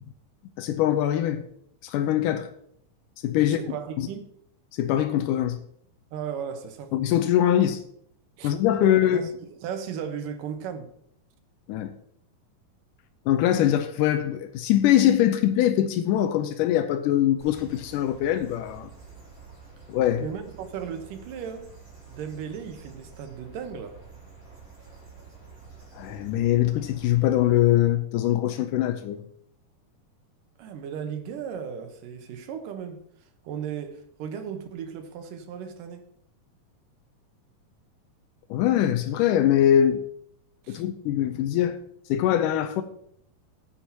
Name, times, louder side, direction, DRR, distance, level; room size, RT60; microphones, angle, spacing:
voice 1, 0.6-1.4 1.8-2.5 3.2-3.6 4.0-4.1 4.7-5.6 6.9-7.8 8.4-9.2 11.7-11.9 13.3-18.9 19.9-20.2 25.9-29.2 38.5-40.0 40.7-41.8 42.1-42.8, left 11 dB, 85° left, 2.2 m, -22 dB
voice 2, 3.4-4.3 6.1-6.9 8.4-8.5 9.1-10.9 20.2-21.7 22.1-24.0 30.6-33.0 33.4-36.1 40.6-40.9, right 7 dB, 85° right, 2.7 m, -36 dB
sound 1, 17.4-27.6, right 5 dB, 25° right, 4.5 m, -48 dB
14.5 x 9.8 x 2.9 m
omnidirectional pair, 3.8 m